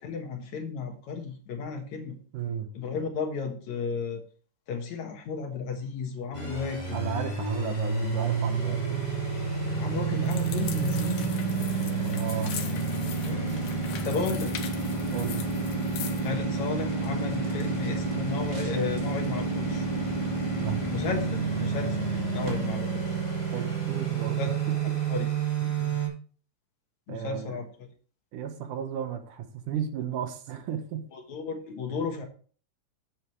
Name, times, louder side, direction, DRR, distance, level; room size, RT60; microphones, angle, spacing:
voice 1, 0.0-2.2 2.7-4.2 4.7-7.0 9.8-11.3 13.2-13.7 14.0-14.5 16.2-19.9 20.9-22.0 22.3-23.2 24.4-24.5 25.1-25.3 27.1-27.7 31.1-32.3, left 5 dB, 65° left, 4 dB, 2.5 m, -33 dB
voice 2, 2.3-2.7 6.9-9.0 12.0-12.5 15.1-15.4 20.6-20.8 23.5-24.8 25.6-26.0 27.1-27.6 28.3-31.1 32.0-32.1, right 9 dB, 75° right, 7 dB, 2.6 m, -34 dB
sound 1, 6.3-26.1, right 4 dB, 10° left, 2.9 m, -29 dB
sound 2, 10.2-16.3, left 9 dB, 85° left, 2.8 m, -41 dB
sound 3, 13.1-23.4, right 1 dB, 40° right, 2.6 m, -48 dB
10.0 x 8.7 x 3.2 m, 0.41 s
omnidirectional pair, 3.8 m